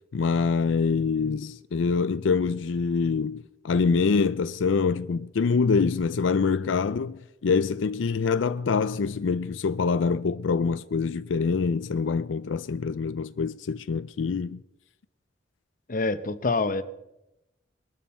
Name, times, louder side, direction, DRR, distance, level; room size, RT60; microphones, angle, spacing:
voice 1, 0.1-14.6, left 5 dB, 90° left, 0.5 m, -25 dB
voice 2, 15.9-16.8, left 3 dB, 45° left, 0.8 m, -26 dB
21.5 x 12.5 x 4.3 m
head